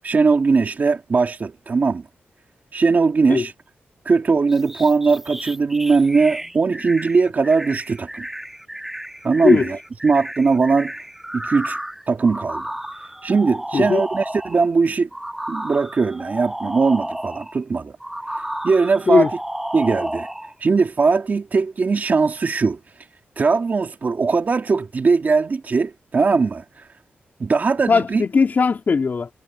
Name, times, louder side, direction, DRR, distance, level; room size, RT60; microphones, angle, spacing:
voice 1, 0.0-2.0 2.7-3.5 4.1-8.3 9.2-9.8 10.0-10.9 11.3-11.8 12.1-12.6 13.2-15.1 15.5-17.9 18.6-19.3 19.7-20.3 20.6-22.8 23.4-26.6 27.4-28.2, right 4 dB, 45° right, 2.2 m, -19 dB
sound 1, 4.5-14.7 15.1-17.6 18.0-20.5, right 1 dB, 5° right, 1.4 m, -32 dB
voice 2, 13.7-14.1 19.1-19.3 27.9-29.3, left 5 dB, 50° left, 3.3 m, -18 dB
wide cardioid pair, 105°, 4 cm